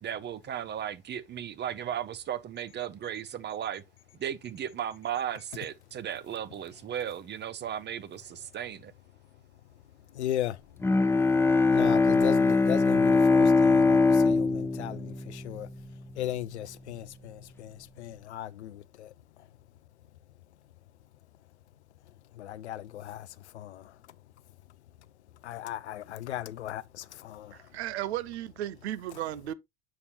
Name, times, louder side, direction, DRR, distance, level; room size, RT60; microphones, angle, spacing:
voice 1, 0.0-3.8 4.2-8.9, right 9 dB, 30° right, 0.9 m, -35 dB
voice 2, 10.1-10.6 11.7-15.7 16.2-19.1 22.4-23.3 23.5-23.8 25.4-27.5, left 12 dB, 75° left, 0.6 m, -36 dB
Bowed string instrument, 10.8-16.1, left 3 dB, 5° left, 0.8 m, -22 dB
voice 3, 27.5-29.5, right 13 dB, 70° right, 0.8 m, -35 dB
7.3 x 6.8 x 2.9 m
figure-of-eight pair, 75°, 34 cm